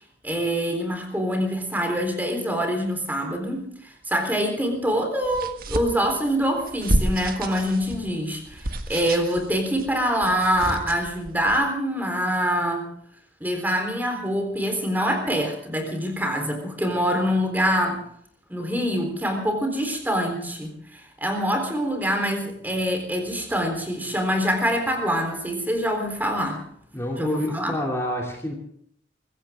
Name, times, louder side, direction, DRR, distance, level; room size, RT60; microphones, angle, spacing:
voice 1, 0.2-12.8 13.4-18.0 18.5-26.6 27.2-27.7, equal, 10° right, 4 dB, 3.8 m, -25 dB
sound 1, 5.2-11.6, right 1 dB, 55° right, 1.7 m, -30 dB
voice 2, 26.9-28.5, left 1 dB, 15° left, -1 dB, 2.7 m, -28 dB
23.5 x 15.5 x 3.7 m, 0.68 s
head